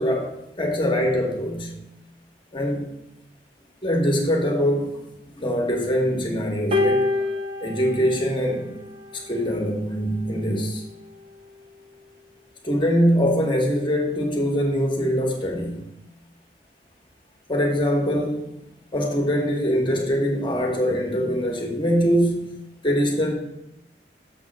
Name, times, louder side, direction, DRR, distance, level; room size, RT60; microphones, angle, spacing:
voice 1, 0.0-1.9 2.5-2.9 3.8-5.0 5.3-7.3 7.6-8.8 9.1-10.8 12.6-15.9 17.5-18.5 18.9-23.3, equal, 25° left, 1.1 m, -23 dB
sound 1, 6.7-9.2 10.2-10.4, left 3 dB, 35° right, 0.6 m, -26 dB
6.8 x 3.5 x 6.1 m
head